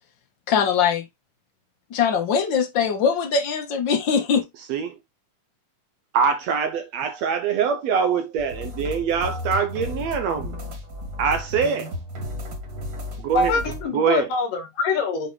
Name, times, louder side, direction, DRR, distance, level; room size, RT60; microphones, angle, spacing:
voice 1, 0.5-1.0 1.9-4.4, left 6 dB, 60° left, 1.2 m, -21 dB
voice 2, 6.1-10.6 11.2-11.9 13.2-13.5 13.9-14.3, right 6 dB, 75° right, 1.6 m, -23 dB
sound 1, 8.4-13.8, left 1 dB, 55° right, 3.9 m, -33 dB
voice 3, 13.3-15.3, left 4 dB, 90° left, 3.7 m, -24 dB
8.0 x 4.5 x 3.2 m
omnidirectional pair, 3.7 m